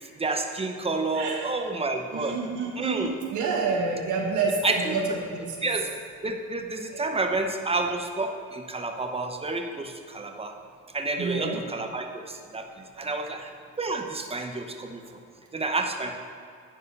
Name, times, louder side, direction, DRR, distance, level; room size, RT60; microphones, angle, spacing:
voice 1, 0.0-2.4 2.8-3.1 4.6-4.8 5.6-5.9 6.2-10.5 10.9-13.5 13.8-15.0 15.5-16.1, right 3 dB, 20° right, 4 dB, 0.9 m, -29 dB
voice 2, 1.1-1.5 2.1-5.7 6.9-7.2 11.2-11.6 12.9-13.1 15.0-15.1, right 4 dB, 75° right, 0 dB, 1.5 m, -29 dB
11.0 x 4.7 x 5.4 m, 2.3 s
cardioid pair, 90°, 30 cm